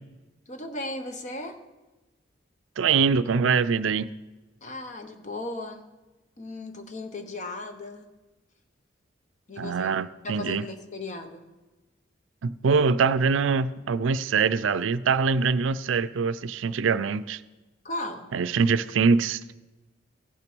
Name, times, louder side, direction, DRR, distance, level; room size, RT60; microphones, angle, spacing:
voice 1, 0.5-1.6 4.6-5.8 6.4-8.1 9.5-9.9 10.2-11.4 17.8-18.3, left 2 dB, 40° left, 7 dB, 0.9 m, -36 dB
voice 2, 2.8-4.1 9.6-10.7 12.4-17.4 18.3-19.6, right 5 dB, 85° right, 16 dB, 0.4 m, -24 dB
15.5 x 5.9 x 6.1 m, 1.1 s
head